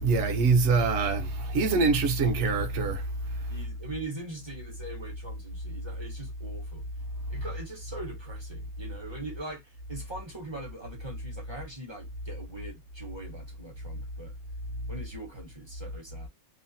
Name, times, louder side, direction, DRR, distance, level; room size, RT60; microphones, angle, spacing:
voice 1, 0.0-3.4, right 4 dB, 65° right, 0.7 m, -25 dB
voice 2, 3.5-6.8 7.3-14.3 14.9-16.3, right 2 dB, 30° right, 0.5 m, -42 dB
2.9 x 2.0 x 2.6 m
omnidirectional pair, 1.6 m